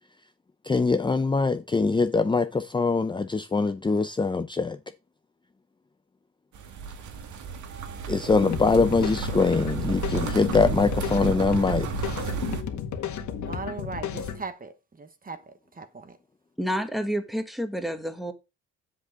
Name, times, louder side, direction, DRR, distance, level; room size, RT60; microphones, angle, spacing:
voice 1, 0.6-4.8 8.1-11.9, left 4 dB, 15° left, 0.6 m, -23 dB
sound 1, 6.5-12.6, right 6 dB, 75° right, 1.9 m, -32 dB
sound 2, 8.4-14.4, left 8 dB, 70° left, 1.8 m, -33 dB
voice 2, 13.5-14.7 15.0-15.4 15.8-16.2, right 4 dB, 30° right, 1.2 m, -38 dB
voice 3, 16.6-18.3, equal, ahead, 1.7 m, -29 dB
8.3 x 7.7 x 3.7 m
cardioid pair, 90°, 30 cm